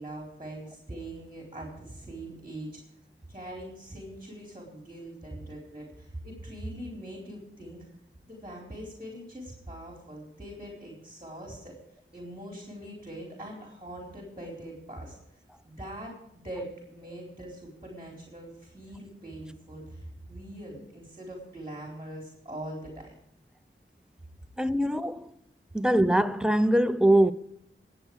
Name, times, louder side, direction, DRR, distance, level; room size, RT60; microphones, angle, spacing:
voice 1, 0.0-2.8 3.3-7.8 8.2-11.7 12.1-15.1 15.6-23.1, right 1 dB, 20° right, 4.0 m, -42 dB
voice 2, 24.6-25.3 25.7-27.3, right 1 dB, 5° right, 0.7 m, -22 dB
22.0 x 8.2 x 4.8 m
wide cardioid pair, 60°, 21 cm